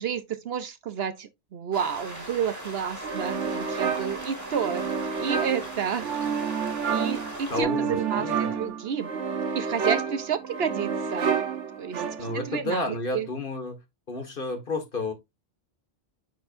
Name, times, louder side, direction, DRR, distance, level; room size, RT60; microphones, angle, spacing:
voice 1, 0.0-4.9 5.2-6.1 6.9-9.1 9.5-11.4 11.8-12.0 12.3-13.3, right 7 dB, 65° right, 0.9 m, -30 dB
sound 1, 1.7-7.6, right 1 dB, 15° right, 1.8 m, -39 dB
sound 2, 3.0-12.5, right 6 dB, 85° right, 1.3 m, -30 dB
voice 2, 7.5-8.6 12.2-13.8 14.1-15.1, left 2 dB, 50° left, 1.7 m, -31 dB
9.2 x 4.4 x 2.5 m
omnidirectional pair, 1.2 m